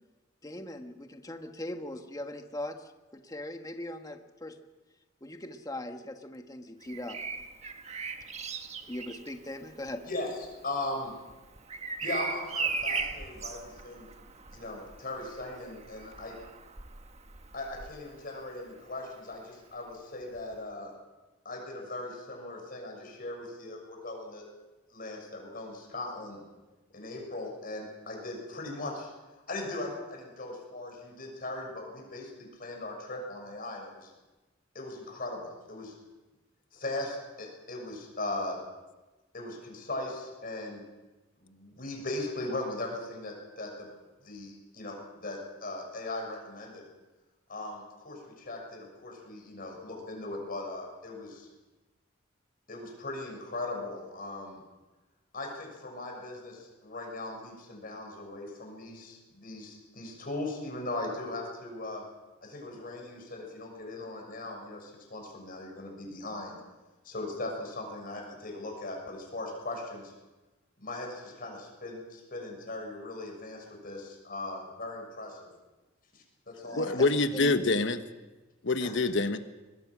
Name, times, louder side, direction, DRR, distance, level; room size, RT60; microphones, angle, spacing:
voice 1, 0.4-4.6 5.2-7.2 8.8-10.0 76.6-77.5, left 1 dB, 20° left, 5 dB, 1.5 m, -40 dB
Bird vocalization bird call bird song, 6.8-18.6 20.3-20.5, right 4 dB, 35° right, 1.4 m, -39 dB
voice 2, 10.1-11.1 12.0-14.1 14.5-16.4 17.5-20.9 21.4-24.5 24.9-26.4 26.9-29.1 29.5-34.1 34.7-35.9 36.7-38.6 39.3-40.8 41.4-43.9 44.2-46.8 47.5-51.5 52.7-54.6 55.3-62.0 62.4-66.6 67.0-70.1 70.8-75.5 76.1-77.0 78.8-78.9, left 2 dB, 45° left, 1 dB, 6.8 m, -39 dB
voice 3, 76.8-78.0 78.6-79.4, left 3 dB, 65° left, 9 dB, 1.2 m, -26 dB
24.0 x 21.0 x 6.2 m, 1.1 s
head